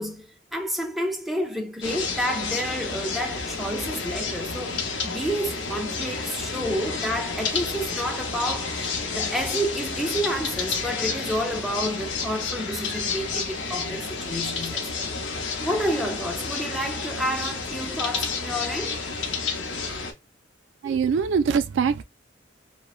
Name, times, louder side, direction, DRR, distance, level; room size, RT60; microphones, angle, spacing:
voice 1, 0.0-15.1 15.6-19.0, equal, ahead, 0.4 m, -30 dB
sound 1, 1.8-20.1, left 4 dB, 70° left, 0.6 m, -30 dB
voice 2, 20.8-22.0, right 6 dB, 70° right, 0.3 m, -23 dB
3.0 x 2.1 x 2.3 m
head